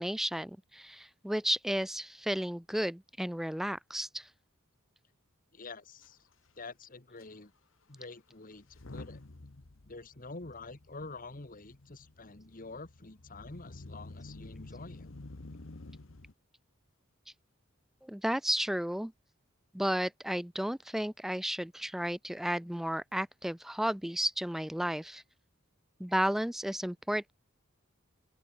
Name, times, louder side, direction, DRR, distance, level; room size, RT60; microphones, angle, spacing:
voice 1, 0.0-4.3 18.0-19.1 19.7-25.2 26.0-27.3, equal, ahead, 0.3 m, -33 dB
voice 2, 5.5-6.2 6.6-7.5 7.9-9.2 9.8-15.1, left 3 dB, 40° left, 1.6 m, -47 dB
Motor vehicle (road) / Engine starting / Accelerating revving vroom, 6.0-6.1 6.3-6.6 7.2-7.3 8.6-16.3, left 2 dB, 65° left, 1.1 m, -50 dB
open air
head